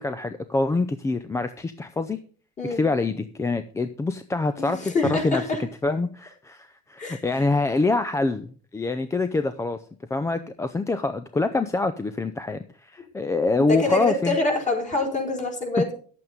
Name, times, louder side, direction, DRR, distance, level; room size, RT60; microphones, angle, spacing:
voice 1, 0.0-2.2 2.6-9.8 10.1-14.4, left 3 dB, 15° left, 10 dB, 0.5 m, -25 dB
voice 2, 4.6-5.6 7.0-7.2 13.6-15.9, left 3 dB, 35° left, 0 dB, 5.0 m, -25 dB
11.0 x 8.4 x 5.2 m, 0.43 s
cardioid pair, 135°, 21 cm